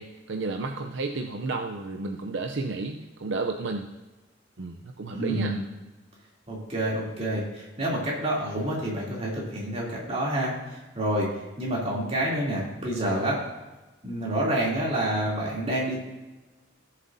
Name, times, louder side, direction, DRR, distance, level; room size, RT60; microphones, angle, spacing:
voice 1, 0.0-3.9 4.6-5.6, right 3 dB, 70° right, 4 dB, 0.6 m, -32 dB
voice 2, 5.1-5.6 6.5-11.3 11.6-13.4 14.0-16.0, right 1 dB, 30° right, -4 dB, 3.0 m, -28 dB
17.0 x 7.5 x 2.7 m, 1.1 s
head